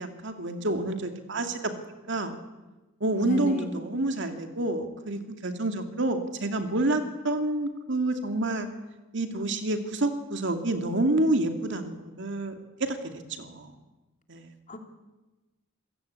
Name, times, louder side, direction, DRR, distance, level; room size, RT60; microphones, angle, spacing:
voice 1, 0.0-2.4 3.0-8.7 9.1-12.5 12.8-13.0 13.3-13.7 14.3-14.5, right 2 dB, 60° right, 6 dB, 2.5 m, -28 dB
voice 2, 3.1-3.7 14.7-14.8, left 2 dB, 40° left, 4 dB, 2.8 m, -32 dB
27.5 x 16.5 x 8.6 m, 1.1 s
head